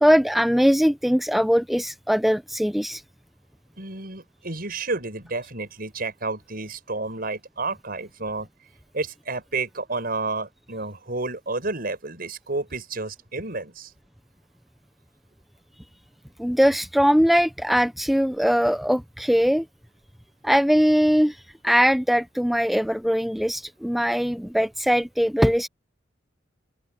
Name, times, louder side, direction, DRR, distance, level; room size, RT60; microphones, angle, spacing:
voice 1, 0.0-3.0 16.4-19.6 20.4-21.4 21.6-25.7, equal, ahead, 0.3 m, -21 dB
voice 2, 3.8-8.5 8.9-13.9, right 3 dB, 50° right, 6.3 m, -31 dB
head